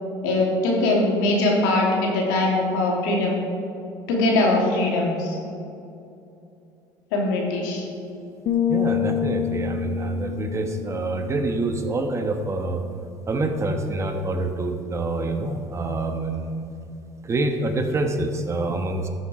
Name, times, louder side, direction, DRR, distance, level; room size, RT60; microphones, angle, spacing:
voice 1, 0.2-3.4 4.1-5.4 7.1-7.9, left 2 dB, 85° left, -2 dB, 2.6 m, -21 dB
sound 1, 8.5-12.2, left 10 dB, 60° left, 0.9 m, -27 dB
voice 2, 8.7-12.8 13.3-16.6 17.2-19.1, right 2 dB, 30° right, 5 dB, 1.2 m, -26 dB
13.0 x 7.4 x 4.8 m, 2.7 s
supercardioid pair, 95°, 10 cm